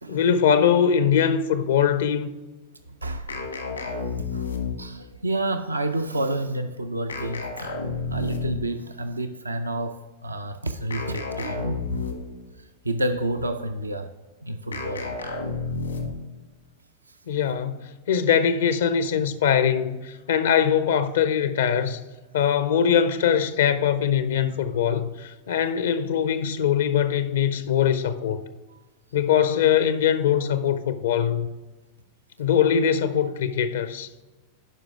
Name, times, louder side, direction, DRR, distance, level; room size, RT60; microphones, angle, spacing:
voice 1, 0.1-2.3 17.3-22.0 22.3-28.4 29.1-31.5 32.4-34.1, left 8 dB, 60° left, 0.5 m, -22 dB
voice 2, 2.9-3.5 4.3-4.5 4.8-7.7 8.1-12.0 12.6-14.1 14.4-15.1, right 1 dB, 80° right, 0.4 m, -29 dB
sound 1, 3.3-5.1 7.1-8.8 10.9-12.4 14.7-16.3, left 4 dB, 80° left, 1.2 m, -31 dB
11.0 x 5.0 x 3.5 m
figure-of-eight pair, 90°, 0 cm